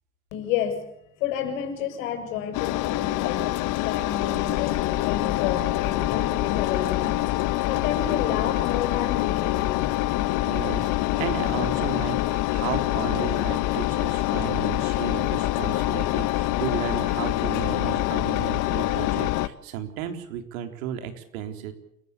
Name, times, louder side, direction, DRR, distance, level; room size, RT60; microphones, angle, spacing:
voice 1, 0.3-0.8 1.2-3.5 3.8-7.3 7.7-9.8, left 9 dB, 65° left, 6 dB, 7.3 m, -30 dB
Engine, 2.5-19.5, left 17 dB, 45° left, 1.2 m, -25 dB
voice 2, 10.4-21.7, right 9 dB, 65° right, 6 dB, 3.9 m, -34 dB
28.5 x 15.5 x 8.5 m, 0.75 s
hypercardioid pair, 100°, 44 cm